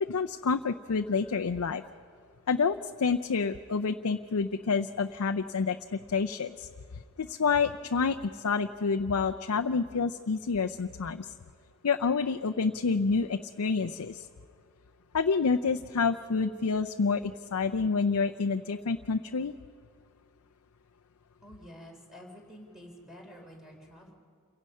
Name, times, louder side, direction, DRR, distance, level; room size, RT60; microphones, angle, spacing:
voice 1, 0.0-1.8 2.5-6.7 7.2-11.3 11.8-14.3 15.1-19.5, left 5 dB, 80° left, 7 dB, 0.6 m, -28 dB
voice 2, 21.4-24.1, equal, ahead, 0 dB, 3.8 m, -49 dB
28.5 x 17.0 x 5.5 m, 2.3 s
head